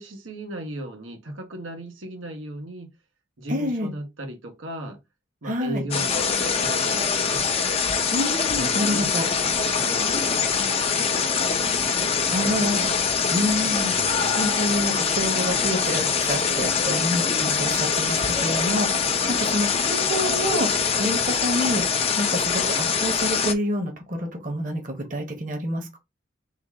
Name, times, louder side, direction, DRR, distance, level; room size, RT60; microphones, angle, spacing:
voice 1, 0.0-2.9 3.4-5.0 5.4-7.4 8.5-11.6, right 1 dB, 85° right, 1.1 m, -36 dB
voice 2, 3.5-3.9 5.4-5.8 8.1-9.3 12.2-12.9 13.3-26.0, equal, 40° right, 1.0 m, -28 dB
sound 1, 5.9-23.5, left 5 dB, 30° left, 0.5 m, -23 dB
3.8 x 2.4 x 4.6 m
head